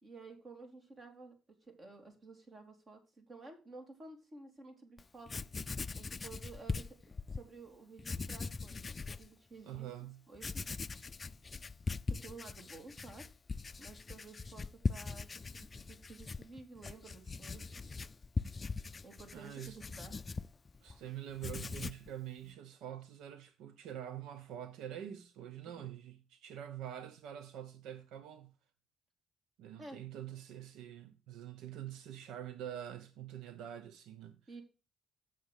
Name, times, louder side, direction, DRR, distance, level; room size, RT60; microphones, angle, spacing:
voice 1, 0.0-1.4 1.6-5.3 5.9-7.0 7.3-9.9 10.3-10.5 12.1-13.3 13.8-17.9 19.0-20.2 22.4-22.5 25.6-25.9 29.8-30.0 34.5-34.6, right 3 dB, 40° right, 3.3 m, -53 dB
Writing, 5.0-5.1 5.3-7.5 8.0-9.3 9.7-9.8 10.3-21.0 21.3-22.1, left 4 dB, 30° left, 0.4 m, -41 dB
voice 2, 9.6-10.2 19.3-19.8 20.8-28.5 29.6-34.4, right 10 dB, 90° right, 0.8 m, -46 dB
7.8 x 6.6 x 6.4 m
cardioid pair, 90°, 0 cm